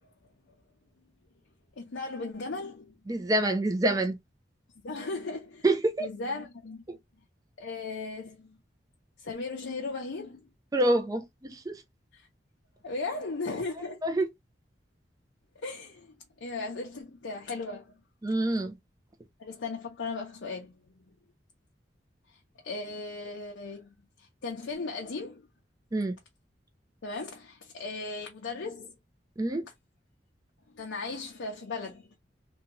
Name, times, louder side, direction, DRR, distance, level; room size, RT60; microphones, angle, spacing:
voice 1, 1.8-3.0 4.8-5.6 6.0-6.8 7.6-8.6 9.2-10.5 12.1-12.3 12.8-14.0 15.6-16.1 16.4-17.9 19.4-20.7 22.3-25.5 27.0-29.0 30.7-32.2, left 3 dB, 90° left, 0.6 m, -37 dB
voice 2, 3.1-4.2 5.6-6.1 10.7-11.8 14.0-14.3 18.2-18.7 25.9-26.2 29.4-29.7, right 1 dB, 20° right, 0.4 m, -26 dB
2.7 x 2.3 x 2.9 m
head